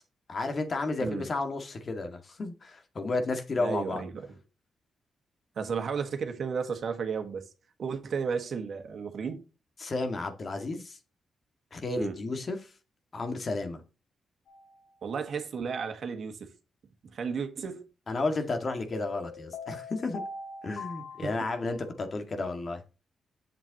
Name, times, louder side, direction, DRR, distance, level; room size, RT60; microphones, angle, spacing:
voice 1, 0.3-4.0 9.8-11.0 11.7-12.7 13.1-13.8 18.1-20.2 20.6-22.8, left 3 dB, 50° left, 2.1 m, -32 dB
voice 2, 3.6-4.3 5.5-7.5 7.8-9.4 11.9-12.2 15.0-16.5 17.0-17.9 21.2-21.5, right 6 dB, 65° right, 1.6 m, -33 dB
sound 1, 14.5-14.8 18.9-21.9, left 4 dB, 75° left, 2.8 m, -42 dB
7.9 x 7.5 x 3.0 m
cardioid pair, 65°, 0 cm